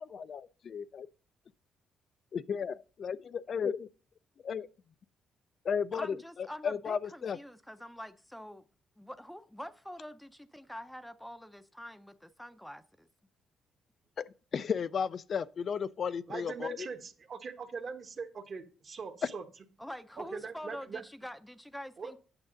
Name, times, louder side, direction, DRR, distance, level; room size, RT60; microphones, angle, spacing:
voice 1, 0.1-1.1 2.3-3.9 4.4-4.7 5.6-7.4 14.2-14.3 14.5-16.9, left 6 dB, 50° left, 0.4 m, -34 dB
voice 2, 5.9-8.6 9.0-13.1 19.8-22.2, equal, 5° left, 0.6 m, -45 dB
voice 3, 16.3-19.4 20.2-21.0 22.0-22.1, right 5 dB, 45° right, 1.2 m, -41 dB
8.7 x 6.2 x 3.8 m
cardioid pair, 90°, 0 cm